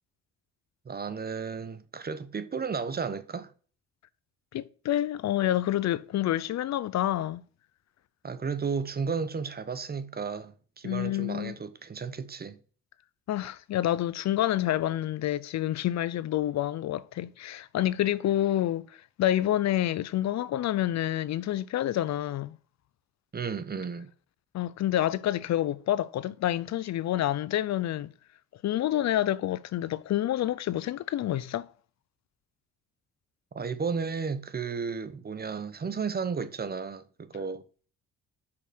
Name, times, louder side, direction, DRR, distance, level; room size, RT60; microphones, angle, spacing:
voice 1, 0.8-3.5 8.2-12.6 23.3-24.1 33.5-37.6, right 5 dB, 30° right, 1.0 m, -33 dB
voice 2, 4.5-7.4 10.8-11.6 13.3-22.6 24.5-28.1 28.6-31.7, left 13 dB, 65° left, 0.6 m, -28 dB
6.5 x 5.8 x 6.3 m
cardioid pair, 90°, 30 cm